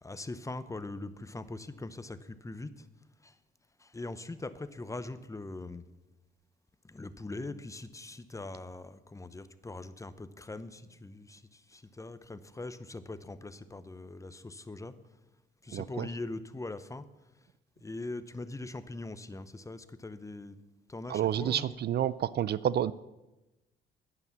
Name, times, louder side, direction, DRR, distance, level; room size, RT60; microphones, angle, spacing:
voice 1, 0.0-2.9 3.2-3.4 3.8-5.8 6.8-15.0 15.6-17.1 17.8-20.5 20.9-21.8, left 2 dB, 15° left, 13 dB, 0.8 m, -42 dB
voice 2, 15.7-16.1 21.1-22.9, right 10 dB, 55° right, 18 dB, 0.4 m, -29 dB
10.5 x 9.9 x 7.0 m, 1.0 s
cardioid pair, 90°, 20 cm